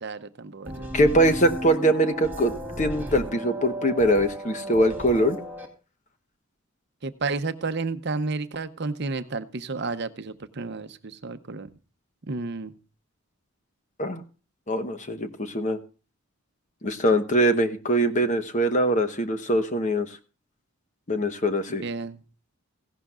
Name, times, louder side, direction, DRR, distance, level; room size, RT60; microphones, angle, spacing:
voice 1, 0.0-0.9 7.0-11.7 12.3-12.7 21.7-22.2, right 3 dB, 50° right, 10 dB, 0.7 m, -31 dB
sound 1, 0.6-5.7, right 1 dB, 10° right, 2.0 m, -34 dB
voice 2, 0.9-5.4 14.0-14.2 14.7-15.8 16.8-20.1 21.1-21.8, right 1 dB, 35° left, 9 dB, 1.0 m, -23 dB
16.0 x 11.5 x 2.4 m, 0.35 s
head